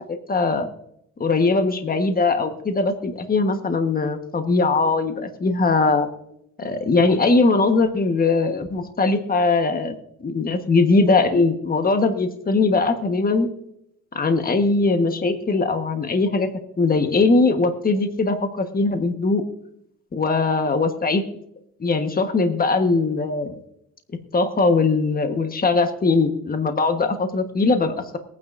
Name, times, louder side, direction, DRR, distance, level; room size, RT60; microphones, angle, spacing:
voice 1, 0.1-0.7 1.2-6.1 6.6-9.9 10.2-13.5 14.1-16.5 16.8-19.4 20.1-21.2 21.8-23.5 24.3-28.2, left 3 dB, 30° left, 7 dB, 1.3 m, -20 dB
22.0 x 9.5 x 2.6 m, 0.77 s
cardioid pair, 90°, 30 cm